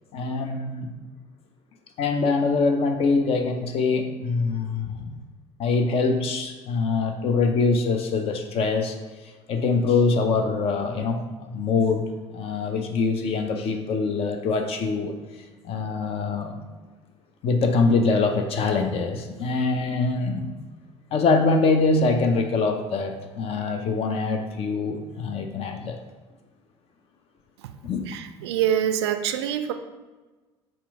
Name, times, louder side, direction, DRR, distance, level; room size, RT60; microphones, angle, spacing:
voice 1, 0.1-0.9 2.0-5.1 5.6-9.0 9.2-12.1 12.3-15.1 15.6-16.6 17.4-20.5 21.1-26.0 27.8-28.0, left 4 dB, 40° left, 5 dB, 0.6 m, -24 dB
voice 2, 28.1-29.7, right 10 dB, 65° right, 8 dB, 0.4 m, -25 dB
4.3 x 2.5 x 4.6 m, 1.3 s
figure-of-eight pair, 60°, 15 cm